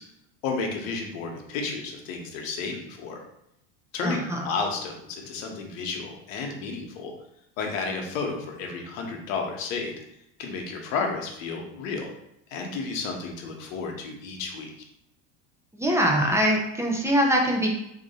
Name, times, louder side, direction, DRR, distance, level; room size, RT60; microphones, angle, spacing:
voice 1, 0.4-3.2 3.9-7.1 7.6-9.9 10.4-12.1 12.5-14.7, left 4 dB, 85° left, 2 dB, 1.0 m, -32 dB
voice 2, 4.0-4.5 15.7-17.7, equal, 5° right, -1 dB, 0.8 m, -23 dB
3.7 x 3.0 x 4.2 m, 0.82 s
supercardioid pair, 110°, 39 cm